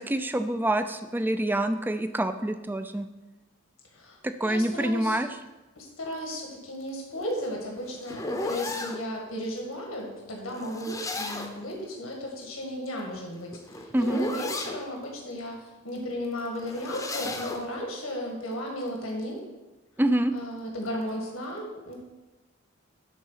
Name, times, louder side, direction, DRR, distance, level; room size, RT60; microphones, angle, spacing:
voice 1, 0.0-3.1 4.2-5.3 13.9-14.2 20.0-20.3, right 1 dB, 10° right, 9 dB, 0.4 m, -26 dB
voice 2, 3.9-5.2 5.8-19.5 20.3-22.0, left 1 dB, 85° left, 0 dB, 1.7 m, -35 dB
sound 1, 7.2-9.0 10.5-11.7 13.1-14.8 16.5-17.7, left 2 dB, 15° left, 0.8 m, -35 dB
11.0 x 4.0 x 5.6 m, 1.1 s
head